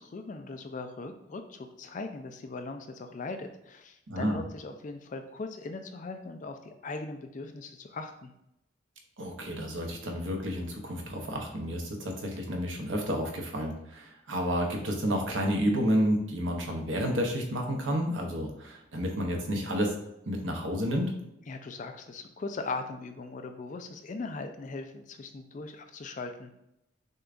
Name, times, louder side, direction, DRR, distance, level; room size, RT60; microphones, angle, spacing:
voice 1, 0.0-8.3 21.5-26.5, left 3 dB, 40° left, 7 dB, 0.3 m, -39 dB
voice 2, 4.1-4.4 9.2-19.9 20.3-21.2, equal, 70° right, 1 dB, 0.8 m, -30 dB
6.4 x 2.3 x 2.5 m, 0.83 s
head